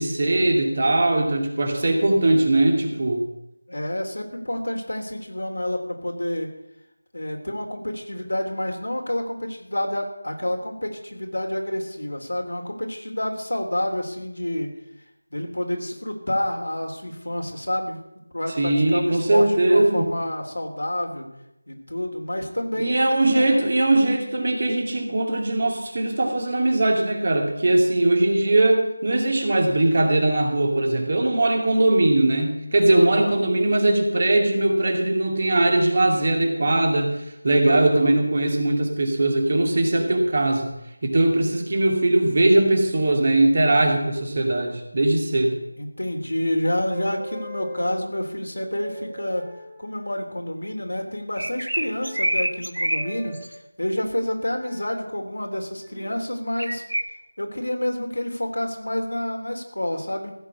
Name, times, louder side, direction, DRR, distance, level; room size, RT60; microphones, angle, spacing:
voice 1, 0.0-3.2 18.6-20.1 22.8-40.7 41.0-45.6, right 2 dB, 40° right, 2 dB, 2.4 m, -20 dB
voice 2, 3.7-6.5 7.1-14.7 15.3-18.0 18.3-21.3 21.7-23.4 32.9-33.4 37.7-38.1 45.8-49.5 49.8-53.4 53.8-56.8 57.4-60.3, left 1 dB, 80° left, 2 dB, 3.3 m, -28 dB
sound 1, 46.9-48.0 48.5-50.2 51.8-52.4 52.9-53.5 54.4-54.9 55.8-56.1, right 1 dB, 10° right, 1.8 m, -41 dB
sound 2, 51.4-53.1 53.3-53.6 54.1-54.2 56.6-57.0, right 1 dB, 85° right, 1.4 m, -26 dB
15.0 x 6.3 x 8.5 m, 0.85 s
figure-of-eight pair, 170°, 0 cm